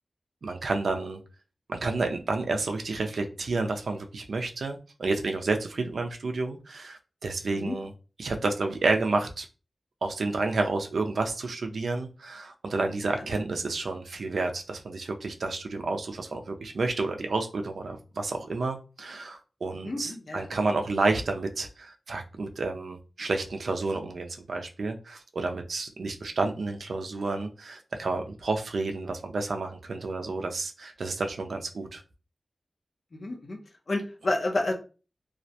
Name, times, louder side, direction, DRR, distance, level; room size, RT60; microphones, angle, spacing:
voice 1, 0.4-1.2 1.7-7.9 8.2-9.5 10.0-32.0, right 3 dB, 90° right, 0.4 m, -30 dB
voice 2, 19.7-20.5 33.1-33.6 33.9-34.7, left 2 dB, 60° left, 0.6 m, -30 dB
2.3 x 2.1 x 2.7 m
wide cardioid pair, 100°, 0 cm